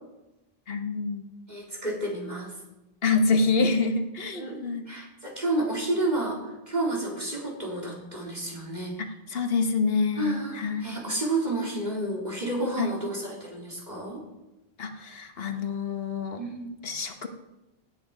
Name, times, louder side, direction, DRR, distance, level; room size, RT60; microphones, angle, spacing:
voice 1, 0.7-1.2 3.0-4.9 9.0-10.9 12.8-12.9 14.8-16.4 16.8-17.3, left 4 dB, 70° left, 7 dB, 1.4 m, -27 dB
voice 2, 1.5-2.5 4.3-6.4 6.7-8.9 10.2-10.6 10.8-14.2 16.4-16.7, right 1 dB, 45° right, -3 dB, 3.8 m, -30 dB
16.5 x 9.5 x 5.3 m, 1.0 s
omnidirectional pair, 1.0 m